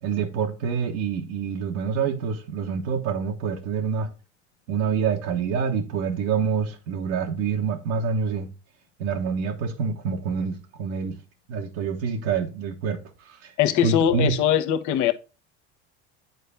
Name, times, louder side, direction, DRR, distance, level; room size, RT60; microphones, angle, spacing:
voice 1, 0.0-4.1 4.7-8.5 9.0-11.2 11.5-13.0 13.2-13.5 13.8-14.4, right 6 dB, 75° right, 1.3 m, -26 dB
voice 2, 13.6-15.1, left 10 dB, 60° left, 1.0 m, -21 dB
9.5 x 4.3 x 3.4 m
supercardioid pair, 90°, 35 cm